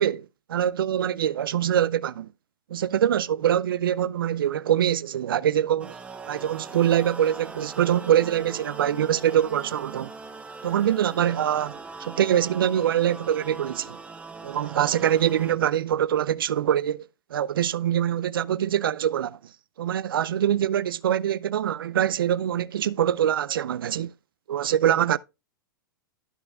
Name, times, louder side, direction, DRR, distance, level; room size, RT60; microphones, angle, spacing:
voice 1, 0.0-2.3 2.7-5.9 6.3-10.1 10.6-14.0 14.4-17.0 17.3-19.4 19.8-24.1 24.5-25.2, right 10 dB, 85° right, 0.4 m, -24 dB
sound 1, 5.8-15.5, right 3 dB, 10° right, 0.7 m, -41 dB
13.0 x 5.4 x 2.3 m
hypercardioid pair, 115°, 11 cm